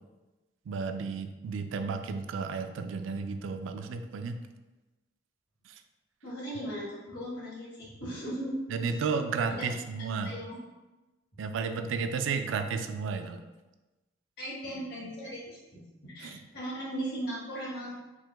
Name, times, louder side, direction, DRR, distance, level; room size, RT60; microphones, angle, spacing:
voice 1, 0.7-4.4 5.7-5.8 8.7-10.3 11.4-13.4 16.2-16.4, right 5 dB, 85° right, 7 dB, 0.3 m, -33 dB
voice 2, 6.2-8.6 8.9-9.0 9.6-9.7 10.2-10.6 14.4-18.0, right 1 dB, 60° left, -6 dB, 1.4 m, -38 dB
4.6 x 2.1 x 3.4 m, 1.1 s
head